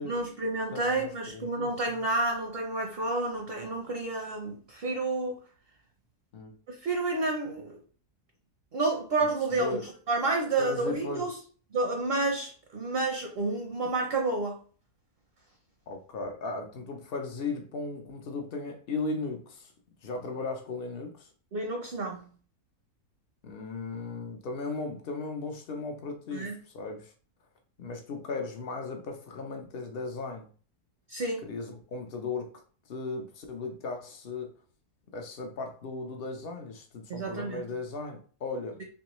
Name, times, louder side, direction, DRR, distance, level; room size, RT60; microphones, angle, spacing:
voice 1, 0.0-5.4 6.7-7.8 8.7-11.3 11.7-14.6 21.5-22.3 26.3-26.6 31.1-31.5 37.1-37.7, right 3 dB, 60° right, 0.6 m, -30 dB
voice 2, 0.7-2.1 6.3-6.6 9.5-9.9 10.6-11.3 15.9-19.7 20.0-21.3 23.4-27.1 27.8-30.5 31.4-32.5 32.9-34.5 35.1-38.8, left 3 dB, 80° left, 0.5 m, -36 dB
3.4 x 3.0 x 3.0 m
omnidirectional pair, 1.7 m